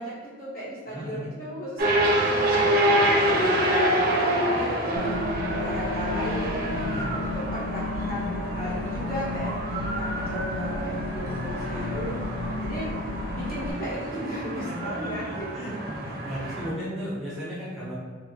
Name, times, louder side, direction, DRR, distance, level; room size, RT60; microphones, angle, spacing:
voice 1, 0.0-2.6 2.9-5.2 5.5-12.2 12.6-12.9 13.3-15.9, equal, 45° left, -8 dB, 1.2 m, -36 dB
voice 2, 0.9-1.2 6.7-7.1 11.2-12.6 14.6-18.0, equal, ahead, -9 dB, 0.6 m, -36 dB
sound 1, 1.8-16.7, right 1 dB, 50° right, 0.5 m, -27 dB
sound 2, 5.0-13.7, left 3 dB, 65° left, 0.3 m, -33 dB
2.9 x 2.1 x 3.5 m, 1.5 s
head